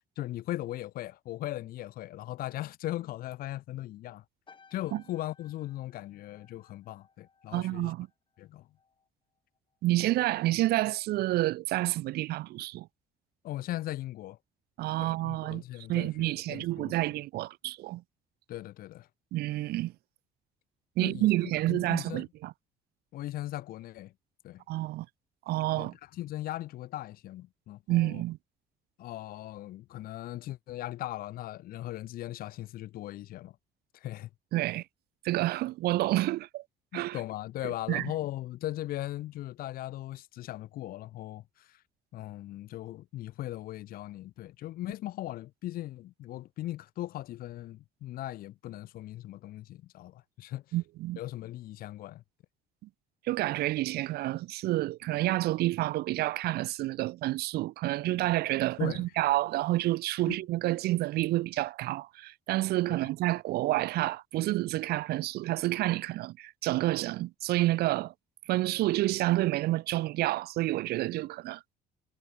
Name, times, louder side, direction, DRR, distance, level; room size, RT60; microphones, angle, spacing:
voice 1, 0.0-4.2 4.7-7.9 8.4-8.7 13.4-14.4 15.0-16.9 18.5-19.1 21.0-22.3 23.1-24.1 24.4-24.6 25.8-28.2 29.0-33.6 33.9-34.3 36.9-41.8 42.1-50.6 51.2-52.2 58.8-59.1 60.3-60.4, left 15 dB, 60° left, 0.4 m, -39 dB
sound 1, 4.5-9.1 9.4-9.8, left 5 dB, 30° left, 3.1 m, -62 dB
voice 2, 7.5-8.1 9.8-12.9 14.8-15.6 15.9-18.0 19.3-19.9 21.0-22.5 24.7-25.1 25.5-25.9 27.9-28.4 34.5-34.8 35.2-36.6 36.9-37.2 37.6-38.1 50.7-51.2 53.3-68.1 68.5-71.6, right 17 dB, 70° right, 0.5 m, -29 dB
cardioid pair, 110°, 17 cm